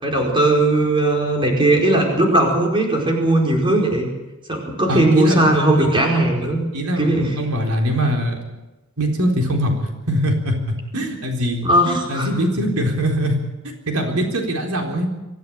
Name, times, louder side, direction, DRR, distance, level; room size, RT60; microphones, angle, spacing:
voice 1, 0.0-4.1 4.5-6.6 7.0-7.3 11.6-12.3, right 1 dB, 25° right, 1 dB, 4.7 m, -18 dB
voice 2, 4.9-5.4 5.8-5.9 6.7-8.4 9.0-10.5 10.9-13.4 13.6-15.1, equal, 90° right, 2 dB, 4.1 m, -22 dB
24.0 x 15.0 x 8.9 m, 1.1 s
head